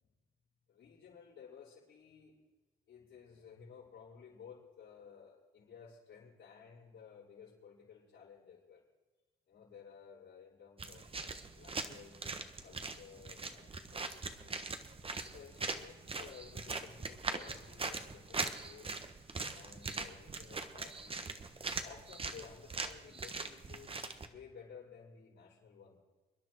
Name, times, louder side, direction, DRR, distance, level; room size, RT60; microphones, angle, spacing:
voice 1, 0.7-2.4 2.9-8.8 9.5-14.6 15.2-19.1 19.5-21.3 21.8-26.0, left 6 dB, 75° left, -11 dB, 5.5 m, -56 dB
sound 1, 10.8-24.3, right 3 dB, 30° right, 1.3 m, -41 dB
28.5 x 10.5 x 4.6 m, 1.2 s
cardioid pair, 90°, 20 cm